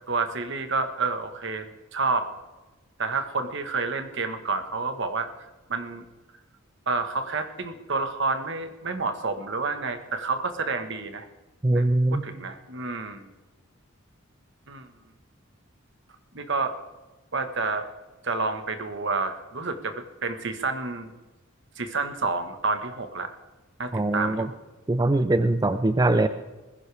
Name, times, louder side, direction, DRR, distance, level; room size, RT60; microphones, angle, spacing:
voice 1, 0.1-2.3 3.0-5.3 5.7-6.1 6.9-11.3 11.7-11.9 12.1-13.3 14.7-14.9 16.3-16.7 17.3-17.9 18.2-21.1 21.8-23.3 23.8-24.5, right 3 dB, 60° right, 7 dB, 1.5 m, -29 dB
voice 2, 11.6-12.2 23.9-24.5 24.9-26.3, right 2 dB, 20° right, 10 dB, 0.4 m, -22 dB
20.5 x 15.5 x 3.5 m, 1.1 s
head